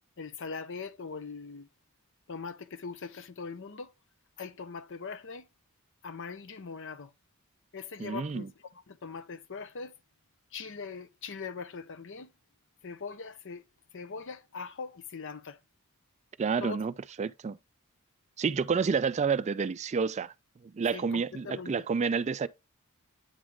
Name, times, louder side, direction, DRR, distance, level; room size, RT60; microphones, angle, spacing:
voice 1, 0.2-1.7 2.3-3.9 4.4-5.4 6.0-7.1 7.7-9.9 10.5-12.3 12.8-13.7 13.9-15.6 16.6-16.8 20.9-21.7, left 5 dB, 55° left, 0.7 m, -41 dB
voice 2, 8.0-8.5 16.4-16.9 17.2-17.6 18.4-20.3 20.6-22.5, right 5 dB, 30° right, 0.3 m, -29 dB
8.8 x 3.7 x 3.0 m
head